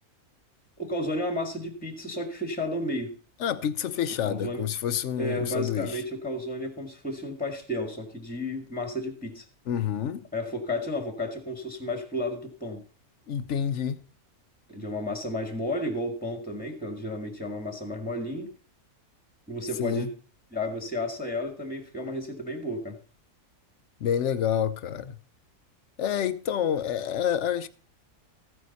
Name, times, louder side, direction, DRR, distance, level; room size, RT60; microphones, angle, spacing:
voice 1, 0.8-3.1 4.2-4.6 5.2-9.4 10.3-12.8 14.7-18.5 19.5-20.1 20.5-23.0, left 1 dB, 5° left, 1.7 m, -32 dB
voice 2, 3.4-6.0 9.7-10.2 13.3-14.0 19.8-20.1 24.0-25.2 26.0-27.7, left 9 dB, 60° left, 1.0 m, -28 dB
14.5 x 9.5 x 4.1 m
omnidirectional pair, 1.6 m